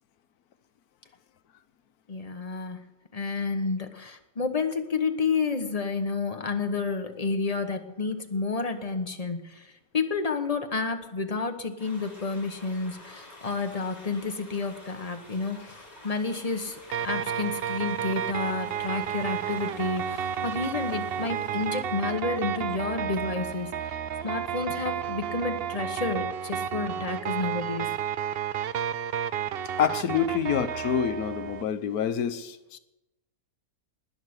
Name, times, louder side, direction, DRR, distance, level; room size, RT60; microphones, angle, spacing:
voice 1, 2.1-2.8 3.1-15.8 16.0-24.0 24.2-28.0, left 4 dB, 25° left, 6 dB, 1.2 m, -30 dB
sound 1, 11.8-22.3, left 1 dB, 30° right, 6.0 m, -49 dB
sound 2, 16.9-31.6, right 9 dB, 65° right, 0.6 m, -32 dB
voice 2, 29.8-32.8, left 8 dB, 75° left, 12 dB, 1.4 m, -27 dB
20.0 x 6.7 x 8.0 m, 0.98 s
omnidirectional pair, 1.6 m